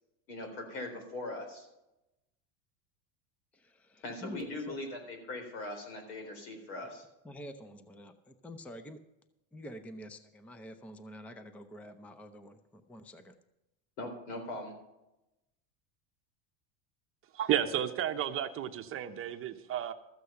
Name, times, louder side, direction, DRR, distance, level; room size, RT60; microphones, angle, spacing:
voice 1, 0.3-1.7 4.0-7.1 14.0-14.7, left 2 dB, 80° left, 5 dB, 4.0 m, -40 dB
voice 2, 3.5-4.8 7.2-9.0 9.5-13.4, equal, 5° left, 10 dB, 0.5 m, -47 dB
voice 3, 17.3-19.9, right 10 dB, 30° right, 7 dB, 0.8 m, -32 dB
13.5 x 8.1 x 5.7 m, 0.94 s
supercardioid pair, 135°, 41 cm